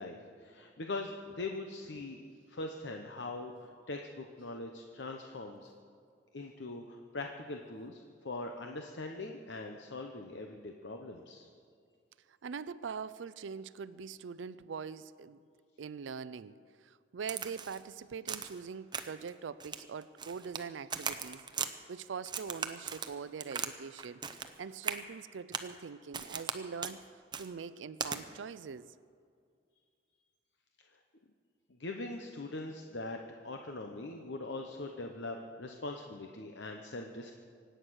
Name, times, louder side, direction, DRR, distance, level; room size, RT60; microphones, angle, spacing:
voice 1, 0.0-2.2 2.5-5.7 6.3-11.5 31.7-33.2 33.4-37.3, left 2 dB, 70° left, 3 dB, 0.9 m, -42 dB
voice 2, 12.3-15.4 15.8-27.0 27.4-28.9, right 6 dB, 75° right, 16 dB, 0.4 m, -43 dB
Crack, 17.3-17.8 18.3-18.6 18.9-19.3 19.6-20.6 20.9-21.7 22.2-23.7 24.0-24.5 24.8-25.0 25.5-25.7 26.1-26.6 26.8-27.0 27.3-27.5 28.0-28.2, right 6 dB, 25° right, 0.7 m, -38 dB
24.5 x 9.1 x 6.4 m, 2.2 s
head